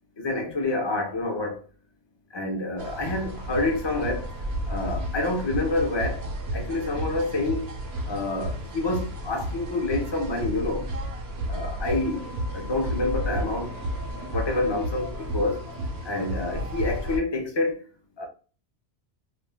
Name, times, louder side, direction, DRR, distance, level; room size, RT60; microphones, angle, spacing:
voice 1, 0.2-1.6 2.3-4.3 4.7-6.2 6.5-7.7 8.1-10.9 11.5-13.8 14.3-15.6 16.0-17.8 18.2-18.3, left 2 dB, 35° left, 0.5 m, -28 dB
sound 1, 2.8-17.2, equal, 75° right, 0.9 m, -32 dB
2.4 x 2.1 x 3.3 m
omnidirectional pair, 1.1 m